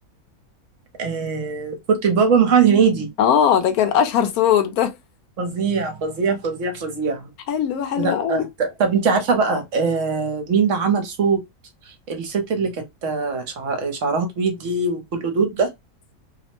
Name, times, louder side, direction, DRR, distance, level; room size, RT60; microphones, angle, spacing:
voice 1, 1.0-3.1 5.4-7.3 8.0-11.4 12.1-15.7, right 5 dB, 65° right, 1.0 m, -21 dB
voice 2, 3.2-4.9 7.5-8.5, left 9 dB, 85° left, 1.1 m, -19 dB
2.8 x 2.0 x 2.9 m
omnidirectional pair, 1.6 m